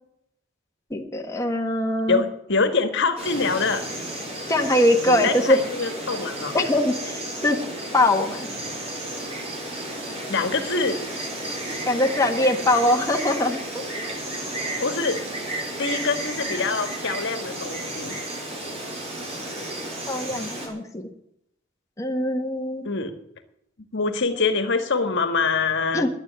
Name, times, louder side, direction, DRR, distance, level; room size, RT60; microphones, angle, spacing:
voice 1, 0.9-2.2 4.5-5.6 6.5-6.9 7.4-7.6 7.9-8.5 11.9-13.6 20.1-21.1 22.0-22.8 25.9-26.1, left 1 dB, 15° left, 1 dB, 1.6 m, -22 dB
voice 2, 2.1-3.8 5.1-6.5 9.9-11.0 14.8-15.2 15.8-18.2 22.8-23.2 23.9-26.1, left 4 dB, 60° left, 7 dB, 1.7 m, -25 dB
Insect, 3.2-20.7, right 1 dB, 30° right, 4.6 m, -32 dB
11.0 x 9.6 x 9.5 m, 0.75 s
head